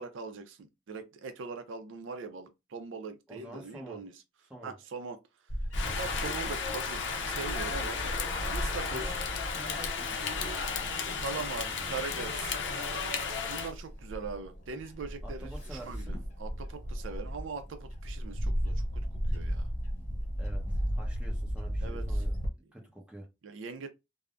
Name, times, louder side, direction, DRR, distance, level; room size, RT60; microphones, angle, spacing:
voice 1, 0.0-4.1 4.6-5.2 5.9-8.0 8.4-9.1 11.2-12.6 13.5-19.0 19.3-19.7 21.8-22.2 23.4-23.9, right 4 dB, 80° right, 0.4 m, -41 dB
voice 2, 3.3-4.0 4.5-4.7 8.7-9.2 9.5-10.6 11.6-12.0 15.2-16.1 20.4-22.4 22.7-23.3, right 1 dB, 5° right, 0.8 m, -47 dB
Bird / Wind, 5.5-22.5, equal, 40° left, 0.9 m, -36 dB
Rain, 5.7-13.7, left 5 dB, 65° left, 0.5 m, -34 dB
3.3 x 2.0 x 2.4 m
head